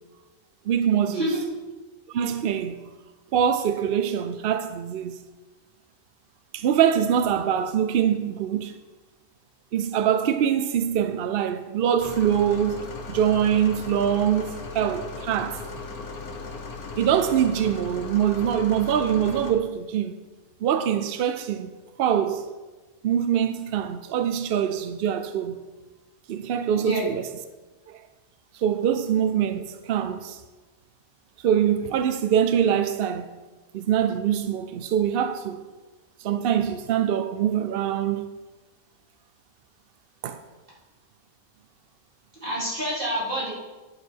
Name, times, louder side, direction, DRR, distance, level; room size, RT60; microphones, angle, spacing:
voice 1, 0.7-1.3 2.1-2.8 3.3-5.2 6.5-8.7 9.7-15.6 17.0-20.2 20.6-21.7 22.0-22.5 23.0-25.6 26.3-27.3 27.9-28.0 28.5-30.4 31.4-33.3 33.7-35.6 36.2-38.3 40.2-40.4, right 9 dB, 65° right, 0.5 m, -24 dB
sound 1, 12.0-19.5, left 3 dB, 85° left, 1.6 m, -37 dB
voice 2, 42.4-43.5, equal, 35° right, 4.1 m, -27 dB
11.0 x 7.5 x 4.6 m
omnidirectional pair, 1.5 m